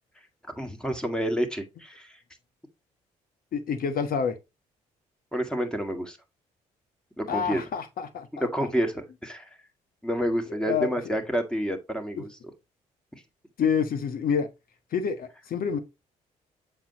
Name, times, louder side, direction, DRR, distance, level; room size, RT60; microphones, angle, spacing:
voice 1, 0.5-2.2 5.3-6.2 7.2-7.6 8.4-9.5 10.0-12.3, equal, 5° left, 1.9 m, -29 dB
voice 2, 3.5-4.4 7.3-8.5 10.6-11.2 12.2-12.3 13.6-14.5 14.9-15.8, left 6 dB, 60° left, 1.2 m, -28 dB
7.3 x 4.6 x 2.9 m
hypercardioid pair, 55°, 17 cm